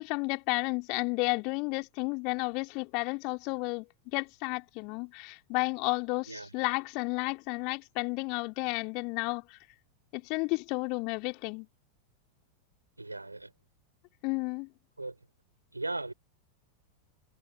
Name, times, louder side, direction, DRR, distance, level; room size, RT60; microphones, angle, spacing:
voice 1, 0.0-3.9 4.1-9.6 10.1-11.7 14.2-14.7, left 31 dB, 45° left, 3.0 m, -32 dB
voice 2, 6.3-6.7 13.0-13.5 15.0-15.1 15.7-16.1, right 2 dB, 85° right, 5.4 m, -38 dB
figure-of-eight pair, 90°, 0 cm